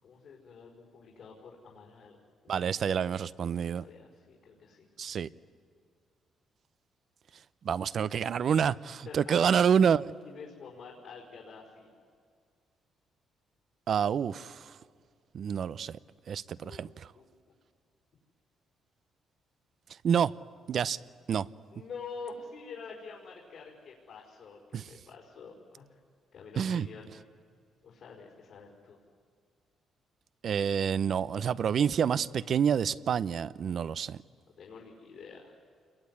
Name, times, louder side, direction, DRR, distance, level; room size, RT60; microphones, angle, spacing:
voice 1, 0.0-2.2 2.4-2.8 3.4-4.9 9.0-11.9 16.6-16.9 17.1-17.2 21.7-25.9 26.3-27.1 27.8-29.0 34.6-35.5, left 4 dB, 70° left, 5.0 m, -47 dB
voice 2, 2.5-3.8 5.0-5.3 7.6-10.1 13.9-14.8 15.3-16.0 16.3-17.1 20.0-20.3 20.7-21.0 21.3-21.5 24.7-24.8 26.6-26.9 30.4-34.2, right 7 dB, 60° right, 0.6 m, -28 dB
28.5 x 22.0 x 9.7 m
cardioid pair, 90°, 0 cm